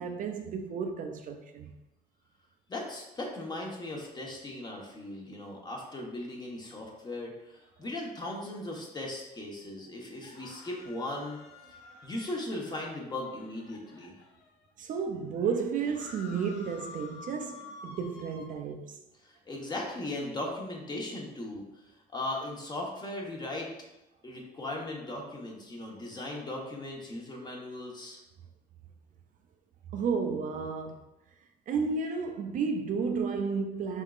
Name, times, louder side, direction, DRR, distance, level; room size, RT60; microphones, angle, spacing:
voice 1, 0.0-1.7 11.9-12.1 14.8-19.0 29.9-31.1 31.7-34.0, right 5 dB, 50° right, 0.4 m, -32 dB
voice 2, 2.7-11.4 12.0-14.2 19.2-21.6 22.1-23.7 24.2-28.2, left 1 dB, 25° left, 1.0 m, -38 dB
sound 1, 10.2-14.6 15.1-15.2 15.4-18.5, left 4 dB, 80° left, 0.7 m, -50 dB
4.8 x 3.6 x 2.4 m
cardioid pair, 110°, 17 cm